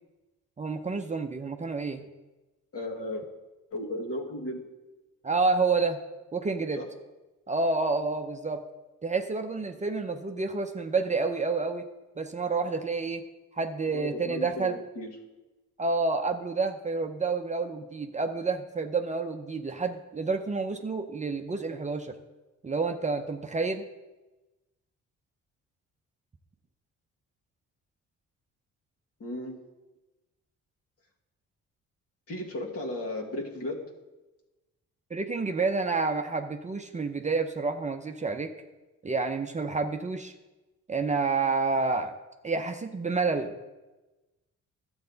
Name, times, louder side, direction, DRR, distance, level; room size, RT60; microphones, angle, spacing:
voice 1, 0.6-2.1 5.2-6.0 6.3-6.8 7.5-8.6 9.0-11.9 12.2-13.2 13.6-14.7 15.8-22.2 22.6-23.8 35.1-38.5 39.0-40.3 40.9-42.1 42.4-43.5, right 4 dB, 25° right, 5 dB, 0.7 m, -29 dB
voice 2, 2.7-3.2 3.7-4.7 6.8-6.9 13.9-15.2 29.2-29.6 32.3-33.9, left 1 dB, 50° left, -1 dB, 2.1 m, -35 dB
12.5 x 7.8 x 4.0 m, 1.1 s
cardioid pair, 90°, 30 cm